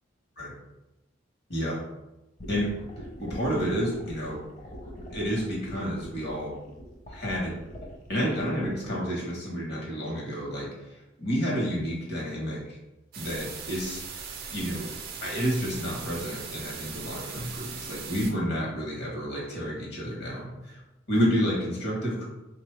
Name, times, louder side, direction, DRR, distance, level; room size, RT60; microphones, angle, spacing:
sound 1, 2.4-8.9, equal, 40° left, 0.8 m, -42 dB
voice 1, 3.2-4.4 5.1-6.5 7.1-7.6 8.1-12.8 13.2-14.0 14.5-14.9 15.2-20.8 21.1-22.2, equal, 60° left, -3 dB, 1.3 m, -30 dB
sound 2, 13.1-18.3, right 5 dB, 50° right, 0.5 m, -39 dB
3.7 x 2.6 x 3.3 m, 0.95 s
head